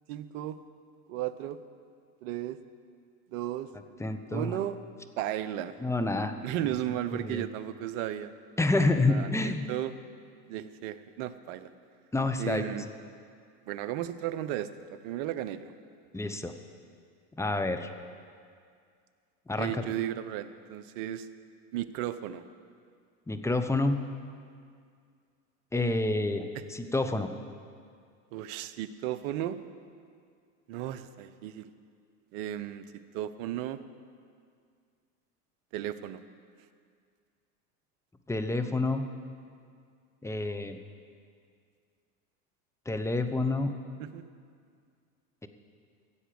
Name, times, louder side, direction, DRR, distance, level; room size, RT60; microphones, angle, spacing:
voice 1, 0.1-0.6 1.1-1.6 2.2-2.6 3.3-3.7 4.3-4.8 5.2-5.7 6.4-8.3 9.1-9.9 10.5-11.7 12.4-12.9 13.7-15.7 19.6-21.3 21.7-22.4 26.5-26.6 28.3-29.6 30.7-31.7 32.3-33.8 35.7-36.2 44.0-44.3, right 12 dB, 60° right, 13 dB, 0.9 m, -35 dB
voice 2, 4.0-4.5 5.8-6.3 7.2-7.4 8.6-9.7 12.1-12.6 16.1-16.5 17.4-17.9 19.5-19.8 23.3-24.0 25.7-27.3 38.3-39.1 40.2-40.8 42.9-43.7 45.4-45.5, left 2 dB, 5° left, 7 dB, 0.8 m, -28 dB
15.0 x 8.0 x 7.7 m, 2.2 s
hypercardioid pair, 95°, 48 cm